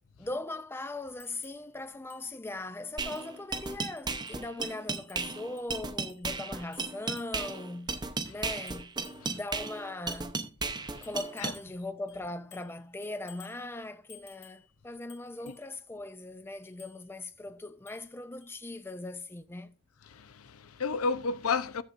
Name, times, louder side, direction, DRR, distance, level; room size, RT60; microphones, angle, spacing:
voice 1, 0.0-8.9 9.3-10.4 11.0-19.7, left 2 dB, 10° left, 0.4 m, -40 dB
sound 1, 1.2-1.7 2.1-2.3 2.6-2.7 3.1-3.4 4.0-4.5 4.9-6.3 6.7-7.6 8.3-9.4 10.1-10.3 11.0-11.8 12.1-12.8 13.0-13.6 14.1-14.7 15.1-15.6 16.6-17.0 17.9-18.1 18.4-18.5, left 6 dB, 35° left, 2.3 m, -55 dB
sound 2, 3.0-11.6, right 4 dB, 20° right, 0.7 m, -35 dB
voice 2, 10.7-11.1 11.4-11.5 15.4-15.5 20.0-21.8, left 4 dB, 80° left, 0.7 m, -33 dB
14.0 x 7.6 x 2.5 m
head